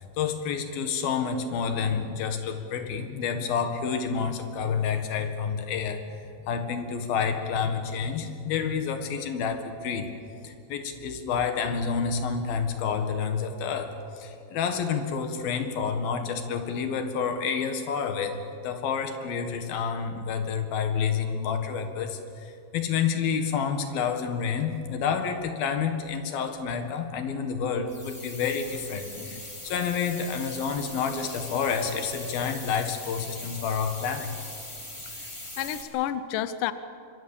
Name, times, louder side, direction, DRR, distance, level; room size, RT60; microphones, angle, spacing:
voice 1, 0.2-6.0 6.5-10.1 10.4-18.4 18.6-34.3, left 6 dB, 65° left, 6 dB, 3.3 m, -29 dB
sound 1, 27.9-35.8, left 1 dB, 10° left, 1.6 m, -41 dB
voice 2, 35.6-36.7, left 11 dB, 85° left, 12 dB, 1.8 m, -31 dB
25.5 x 23.5 x 7.3 m, 2.6 s
omnidirectional pair, 5.0 m